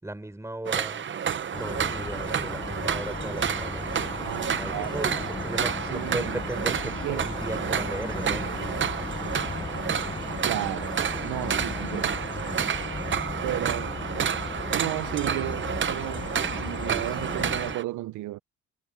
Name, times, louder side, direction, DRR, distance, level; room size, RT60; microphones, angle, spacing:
voice 1, 0.0-1.1 1.6-3.9 4.4-8.5, right 1 dB, 10° right, 3.7 m, -36 dB
sound 1, 0.7-17.8, right 8 dB, 40° right, 0.8 m, -30 dB
sound 2, 1.5-17.7, left 4 dB, 15° left, 0.5 m, -36 dB
voice 2, 4.2-5.3 5.9-7.2 10.4-12.6 13.4-13.9 14.7-18.4, right 17 dB, 85° right, 0.7 m, -34 dB
cardioid pair, 90°, 30 cm